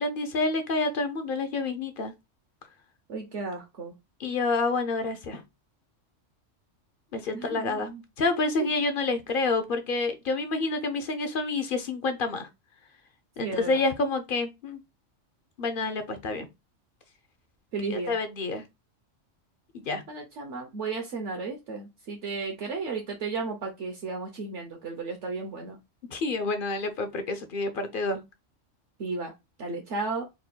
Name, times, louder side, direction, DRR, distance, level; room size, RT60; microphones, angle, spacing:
voice 1, 0.0-2.1 4.2-5.4 7.1-7.9 8.2-12.5 13.4-14.8 15.6-16.5 17.9-18.6 19.7-20.0 26.1-28.2, left 3 dB, 50° left, 0.8 m, -28 dB
voice 2, 3.1-3.9 7.3-8.0 8.6-8.7 13.4-13.8 17.7-18.1 20.1-25.8 29.0-29.3 29.6-30.2, right 4 dB, 70° right, 1.1 m, -34 dB
4.2 x 4.2 x 2.2 m
omnidirectional pair, 1.3 m